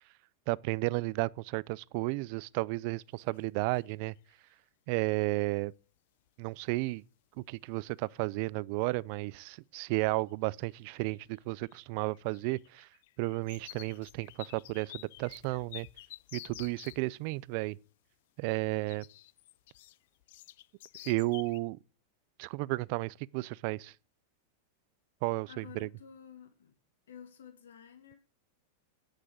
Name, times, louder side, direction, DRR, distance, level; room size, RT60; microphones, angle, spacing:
voice 1, 0.5-4.1 4.9-5.7 6.4-7.0 7.4-12.9 13.2-15.9 16.3-17.8 18.4-19.1 21.0-21.8 22.4-23.9 25.2-25.9, right 23 dB, 55° right, 0.4 m, -33 dB
sound 1, 3.2-3.4 3.7-4.3 6.3-6.4 7.0-7.1 7.4-7.7 8.0-8.6 9.1-9.2 10.3-10.7 11.0-17.0 18.9-21.6, left 16 dB, 65° left, 0.5 m, -51 dB
voice 2, 25.5-26.7 27.1-28.2, left 8 dB, 90° left, 2.2 m, -51 dB
10.5 x 6.2 x 7.9 m
hypercardioid pair, 130°, 0 cm